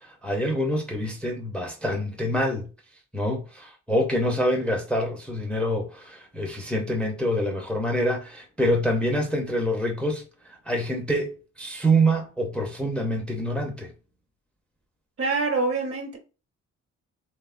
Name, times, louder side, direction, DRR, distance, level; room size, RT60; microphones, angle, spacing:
voice 1, 0.2-2.7 3.1-10.2 10.5-11.3 11.6-13.9, equal, 5° left, 0.5 m, -26 dB
voice 2, 15.2-16.2, right 3 dB, 50° right, 0.9 m, -25 dB
3.0 x 2.1 x 2.4 m
cardioid pair, 90°, 30 cm